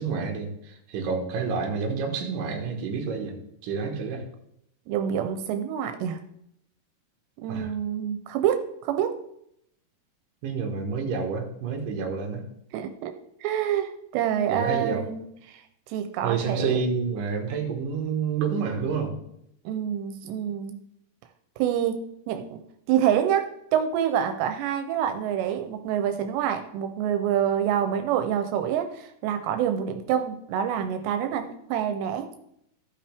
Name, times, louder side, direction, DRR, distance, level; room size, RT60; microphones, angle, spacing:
voice 1, 0.0-3.3 3.6-4.3 7.5-7.7 10.4-12.4 14.5-15.1 16.2-19.1, right 5 dB, 60° right, 2 dB, 2.7 m, -29 dB
voice 2, 4.9-6.2 7.4-9.2 12.7-13.1 13.4-15.6 15.9-16.8 19.7-20.8 21.6-22.6 22.9-32.3, right 9 dB, 85° right, 7 dB, 2.9 m, -27 dB
15.0 x 5.7 x 3.5 m, 0.75 s
omnidirectional pair, 4.9 m